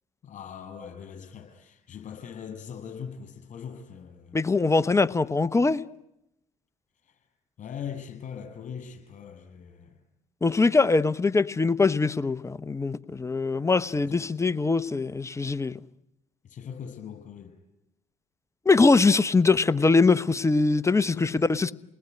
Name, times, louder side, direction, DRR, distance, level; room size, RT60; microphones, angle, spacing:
voice 1, 0.2-4.4 7.0-7.3 7.6-10.0 13.9-14.3 16.4-17.5 21.2-21.5, left 7 dB, 50° left, 7.2 m, -41 dB
voice 2, 4.3-5.8 10.4-15.8 18.7-21.7, left 3 dB, 20° left, 0.9 m, -22 dB
28.5 x 19.5 x 9.6 m
hypercardioid pair, 65°, 16 cm